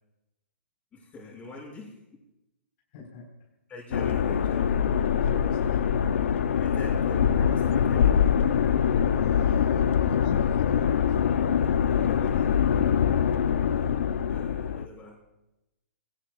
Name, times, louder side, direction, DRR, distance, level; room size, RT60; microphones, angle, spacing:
voice 1, 0.9-2.2 3.7-4.7 6.6-8.1 11.8-13.2 14.3-15.2, left 2 dB, 20° left, -2 dB, 6.9 m, -45 dB
voice 2, 2.9-3.3 5.0-5.8 9.2-11.0, left 3 dB, 45° left, -2 dB, 4.9 m, -42 dB
sound 1, 3.9-14.9, left 8 dB, 65° left, 0.9 m, -24 dB
25.0 x 18.0 x 2.5 m, 0.95 s
hypercardioid pair, 130°, 7 cm